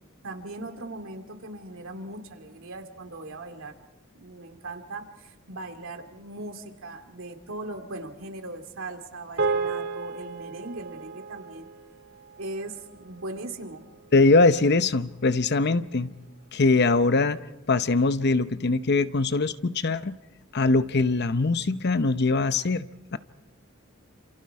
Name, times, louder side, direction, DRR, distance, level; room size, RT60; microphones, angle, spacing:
voice 1, 0.2-3.7 4.1-11.7 12.4-13.8, right 2 dB, 85° right, 2.4 m, -39 dB
sound 1, 9.4-13.9, right 4 dB, 65° right, 2.8 m, -33 dB
voice 2, 14.1-16.1 16.5-17.4 17.7-20.2 20.5-23.2, left 3 dB, 55° left, 0.8 m, -22 dB
28.5 x 28.0 x 4.8 m
head